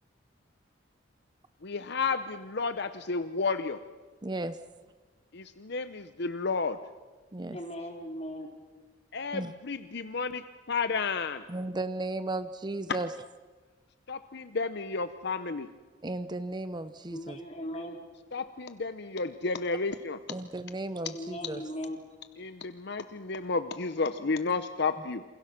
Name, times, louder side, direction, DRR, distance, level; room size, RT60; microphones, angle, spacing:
voice 1, 1.6-3.8 5.3-6.8 9.1-11.4 12.9-13.0 14.1-15.7 18.3-20.4 21.0-21.1 22.4-25.2, left 4 dB, 60° left, 11 dB, 0.8 m, -32 dB
voice 2, 4.2-4.6 7.3-7.6 9.3-9.5 11.5-13.1 16.0-17.4 20.3-21.6, right 2 dB, 25° right, 12 dB, 0.7 m, -35 dB
voice 3, 7.5-8.5 17.1-18.0 21.1-22.0, equal, 35° left, 1 dB, 4.3 m, -38 dB
28.5 x 27.5 x 6.0 m, 1.3 s
head